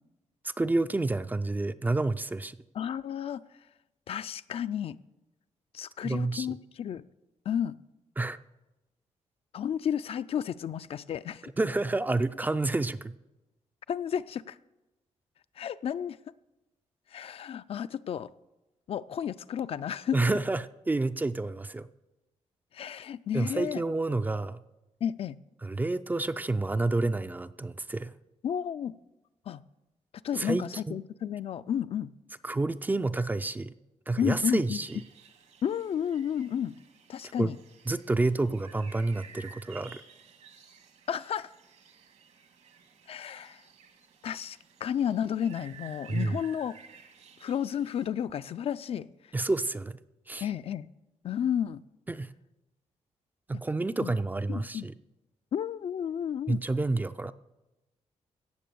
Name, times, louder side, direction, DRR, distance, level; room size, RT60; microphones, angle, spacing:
voice 1, 0.4-2.6 6.0-6.5 8.2-8.4 11.6-13.1 20.1-21.9 23.3-24.6 25.6-28.1 30.3-31.0 32.4-33.7 34.1-34.9 37.4-37.5 37.9-40.0 46.1-46.4 49.3-50.0 50.3-50.5 52.1-52.3 53.5-54.9 56.5-57.3, right 2 dB, 15° right, 13 dB, 0.4 m, -29 dB
voice 2, 2.7-3.4 4.1-5.0 5.7-7.0 7.5-7.8 9.5-11.5 13.9-14.6 15.6-16.2 17.1-18.3 18.9-20.2 22.7-23.8 25.0-25.4 28.4-28.9 29.5-29.6 30.2-32.1 34.2-34.8 35.6-36.8 37.1-37.6 41.1-41.5 43.1-43.6 44.2-46.8 47.4-49.1 50.4-50.9 51.2-51.8 54.0-54.2 54.5-54.9 55.5-56.6, left 9 dB, 55° left, 14 dB, 0.4 m, -32 dB
sound 1, 34.8-48.1, right 6 dB, 70° right, 1.7 m, -54 dB
17.0 x 7.1 x 6.9 m, 1.0 s
wide cardioid pair, 150°, 12 cm